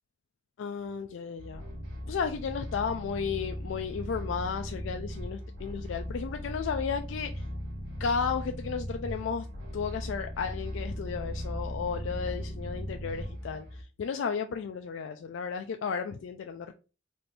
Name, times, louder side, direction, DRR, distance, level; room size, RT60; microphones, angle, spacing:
voice 1, 0.6-1.6 2.1-7.4 8.0-9.5 9.7-16.7, left 6 dB, 75° left, 6 dB, 0.3 m, -33 dB
sound 1, 1.4-13.8, equal, 70° right, 2.3 m, -38 dB
4.3 x 2.6 x 3.2 m, 0.33 s
head